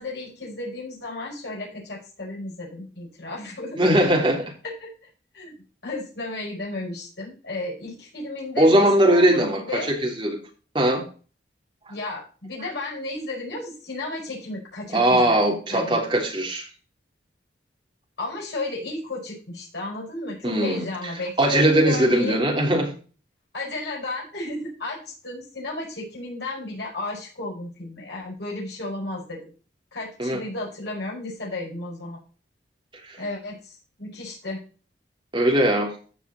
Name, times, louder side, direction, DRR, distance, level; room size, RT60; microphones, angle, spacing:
voice 1, 0.0-4.0 4.6-4.9 5.3-5.6 5.8-9.9 11.9-15.4 15.7-16.0 18.2-22.4 23.5-29.4 29.9-32.2 33.2-34.6, left 2 dB, 70° left, 5.9 m, -33 dB
voice 2, 3.8-4.5 8.6-10.4 10.7-11.0 14.9-16.7 20.4-20.8 21.4-22.9 30.2-30.4 33.1-33.2 35.3-36.0, right 1 dB, 25° right, 3.1 m, -20 dB
14.5 x 5.1 x 4.2 m
head